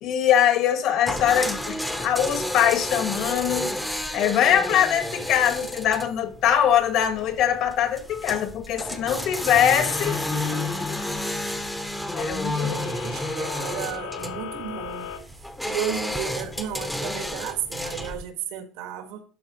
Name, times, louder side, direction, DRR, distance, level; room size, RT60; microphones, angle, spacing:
voice 1, 0.0-3.8 4.1-10.2 12.1-12.8, left 9 dB, 50° left, 1.4 m, -22 dB
sound 1, 1.0-18.2, left 1 dB, 5° left, 0.8 m, -31 dB
sound 2, 9.7-15.2, left 8 dB, 85° left, 1.7 m, -39 dB
voice 2, 12.6-15.1 15.7-19.2, right 10 dB, 75° right, 1.7 m, -33 dB
12.0 x 4.6 x 3.0 m
cardioid pair, 165°, 0 cm